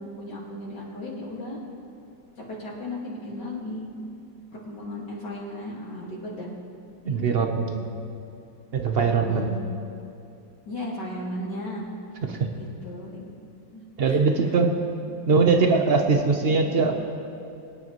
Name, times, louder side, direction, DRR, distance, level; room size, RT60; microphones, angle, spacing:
voice 1, 0.0-1.6 2.5-3.9 4.6-6.5 7.0-7.4 9.1-9.6 10.7-11.9 12.5-13.2 13.7-14.2 15.0-15.6 16.5-16.8, left 1 dB, 65° left, -5 dB, 2.6 m, -36 dB
voice 2, 7.1-7.8 8.7-9.6 12.2-12.5 14.0-14.8 15.3-17.0, right 4 dB, 55° right, 4 dB, 0.6 m, -21 dB
23.0 x 9.8 x 3.0 m, 2.6 s
omnidirectional pair, 2.0 m